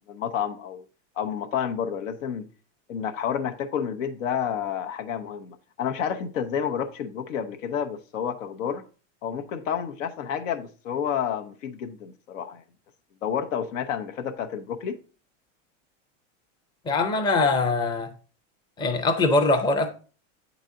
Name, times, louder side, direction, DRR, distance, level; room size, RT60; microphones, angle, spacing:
voice 1, 0.1-0.8 1.2-2.5 2.9-8.8 9.2-12.6 13.2-15.0, left 8 dB, 85° left, 0.9 m, -30 dB
voice 2, 16.9-18.1 18.8-19.9, left 3 dB, 10° left, 0.5 m, -22 dB
8.0 x 4.0 x 3.7 m
supercardioid pair, 145°, 38 cm